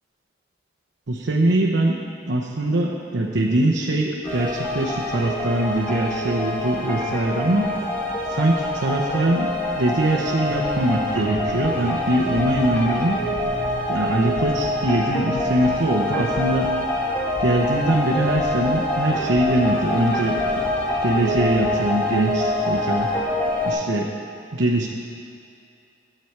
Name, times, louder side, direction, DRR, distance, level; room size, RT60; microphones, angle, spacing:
voice 1, 1.1-2.0 2.3-7.7 8.3-13.2 13.9-16.7 17.4-20.6 21.0-23.1 23.7-24.1 24.5-24.9, right 1 dB, 70° right, -3 dB, 0.8 m, -22 dB
sound 1, 4.2-23.7, left 1 dB, 10° left, 1.5 m, -25 dB
sound 2, 10.4-21.8, equal, 25° left, 2.1 m, -38 dB
11.5 x 7.9 x 4.6 m, 2.5 s
head